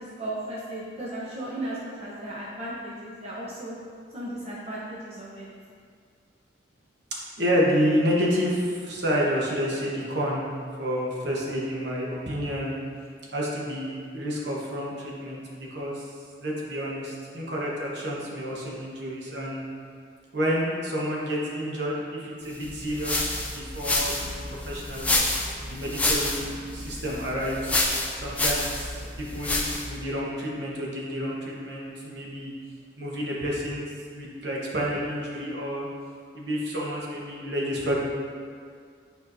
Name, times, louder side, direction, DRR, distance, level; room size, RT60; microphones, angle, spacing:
voice 1, 0.0-3.7 4.1-5.5, right 1 dB, 35° right, -6 dB, 0.7 m, -35 dB
voice 2, 7.4-10.5 10.8-12.8 13.3-16.1 16.4-19.7 20.3-25.2 25.5-27.8 28.2-32.5 33.0-35.9 36.3-38.0, equal, 65° right, -4 dB, 1.1 m, -29 dB
sound 1, 22.6-30.0, left 2 dB, 10° left, 0.4 m, -28 dB
8.2 x 4.5 x 2.6 m, 2.2 s
head